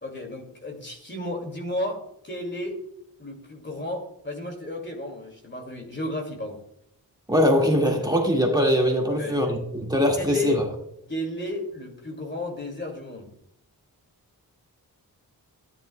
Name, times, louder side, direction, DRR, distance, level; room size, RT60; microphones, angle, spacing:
voice 1, 0.0-2.8 3.2-6.6 9.2-9.5 10.2-10.6 11.1-13.3, left 1 dB, 30° left, 2 dB, 2.3 m, -33 dB
voice 2, 7.3-9.5 9.7-10.6, equal, 10° right, -1 dB, 1.9 m, -21 dB
13.5 x 10.0 x 2.2 m, 0.74 s
wide cardioid pair, 85°, 37 cm